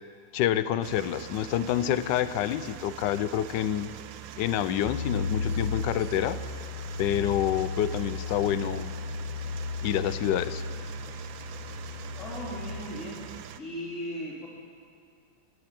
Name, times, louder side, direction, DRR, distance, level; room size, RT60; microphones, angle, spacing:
voice 1, 0.3-3.9 4.4-6.4 7.0-8.9 9.8-10.6, left 11 dB, 75° left, 14 dB, 1.2 m, -27 dB
sound 1, 0.8-13.6, right 11 dB, 85° right, 1.4 m, -44 dB
sound 2, 4.8-12.8, left 4 dB, 10° right, 2.0 m, -35 dB
voice 2, 12.2-13.2 13.6-14.5, equal, 40° left, -7 dB, 4.1 m, -37 dB
13.0 x 12.0 x 9.0 m, 2.3 s
omnidirectional pair, 2.0 m